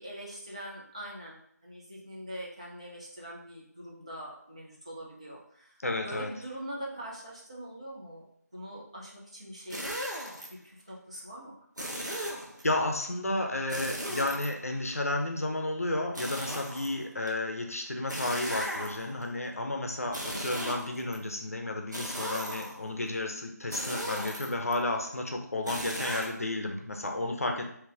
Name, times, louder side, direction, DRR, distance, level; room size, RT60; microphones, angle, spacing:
voice 1, 0.0-8.2 8.5-9.8 10.5-11.5 11.8-12.3 20.2-20.4, right 1 dB, 20° right, -5 dB, 0.4 m, -43 dB
voice 2, 5.8-6.3 12.6-27.7, left 2 dB, 55° left, 3 dB, 0.6 m, -32 dB
sound 1, 9.7-10.5 11.8-12.6 13.7-14.9 16.2-17.3 18.1-19.2 20.0-21.2 21.9-22.9 23.7-24.7 25.7-26.3, equal, 85° right, 0.9 m, -37 dB
2.6 x 2.4 x 3.8 m, 0.68 s
figure-of-eight pair, 165°, 9 cm